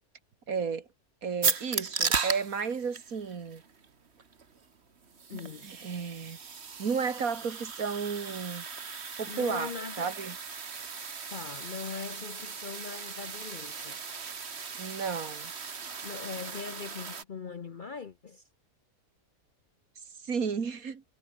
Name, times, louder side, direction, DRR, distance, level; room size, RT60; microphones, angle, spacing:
voice 1, 0.5-0.9 1.2-3.6 5.3-6.4 6.8-8.7 9.2-9.7 10.0-10.4 14.8-15.5 20.2-21.0, right 6 dB, 70° right, 2.2 m, -33 dB
sound 1, 1.4-17.2, right 5 dB, 45° right, 1.7 m, -37 dB
voice 2, 5.3-5.7 9.3-10.1 11.3-14.0 16.0-18.4, left 5 dB, 45° left, 0.7 m, -41 dB
omnidirectional pair, 1.6 m